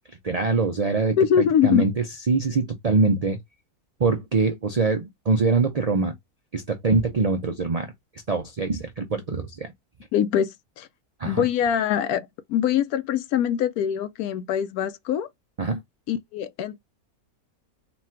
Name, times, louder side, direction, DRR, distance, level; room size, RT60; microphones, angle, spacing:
voice 1, 0.1-1.9 2.3-3.4 4.0-6.1 6.5-7.9 8.3-9.7 11.2-11.4 15.6-15.8, right 4 dB, 60° right, 0.3 m, -23 dB
voice 2, 1.2-1.9 10.1-10.9 11.2-15.3 16.1-16.8, left 9 dB, 80° left, 1.1 m, -23 dB
4.1 x 2.3 x 4.3 m
omnidirectional pair, 1.5 m